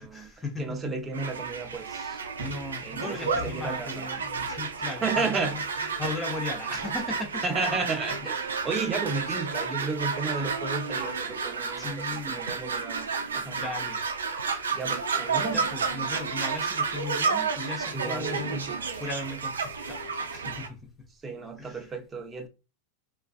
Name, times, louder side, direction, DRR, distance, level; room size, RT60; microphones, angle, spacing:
voice 1, 0.0-0.7 2.4-5.6 6.0-7.4 11.8-12.5 13.5-14.0 15.5-18.6 19.0-20.8 21.6-21.8, left 2 dB, 15° left, 0.8 m, -37 dB
voice 2, 0.6-2.2 2.8-4.0 5.0-5.6 7.4-13.6 14.7-15.6 17.9-18.9 21.2-22.5, right 4 dB, 20° right, 0.6 m, -33 dB
sound 1, 1.1-20.7, right 5 dB, 85° right, 0.3 m, -31 dB
2.4 x 2.4 x 2.3 m
hypercardioid pair, 95°, 0 cm